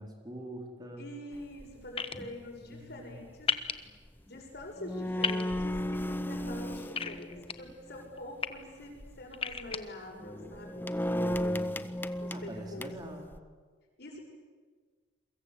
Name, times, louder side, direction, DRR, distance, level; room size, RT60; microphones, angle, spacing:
voice 1, 0.0-1.1 2.6-3.2 11.1-11.8 12.3-13.4, right 1 dB, 20° right, 1 dB, 4.1 m, -43 dB
voice 2, 1.0-3.5 3.8-3.9 4.2-10.9 12.2-13.2 14.0-14.2, left 1 dB, 55° left, 1 dB, 7.2 m, -45 dB
sound 1, 1.3-1.6 2.2-2.4 4.3-4.4 4.6-8.0 8.8-9.1 9.5-9.7 10.2-13.4, left 1 dB, 10° left, 0.8 m, -35 dB
sound 2, 2.0-2.1 3.5-3.7 5.2-5.4 7.0-7.5 8.2-8.5 9.3-9.8, left 6 dB, 30° left, 1.2 m, -31 dB
29.0 x 23.0 x 8.5 m, 1.5 s
head